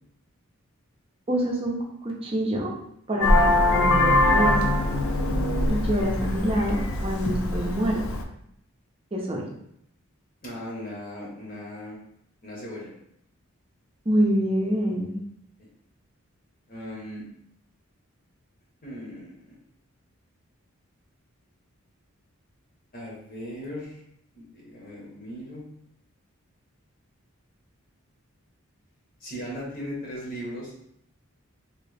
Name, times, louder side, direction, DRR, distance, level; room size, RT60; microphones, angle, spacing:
voice 1, 1.3-2.7 3.1-4.8 5.7-8.0 9.1-9.5 14.1-15.2, equal, 25° right, -1 dB, 0.6 m, -26 dB
Vehicle horn car horn honking, 3.2-8.2, left 1 dB, 75° left, 0.4 m, -22 dB
voice 2, 10.4-12.0 12.4-12.9 16.7-17.2 18.8-19.6 22.9-24.0 24.3-25.6 29.2-30.8, equal, 40° left, -4 dB, 1.0 m, -38 dB
3.0 x 2.9 x 3.3 m, 0.73 s
head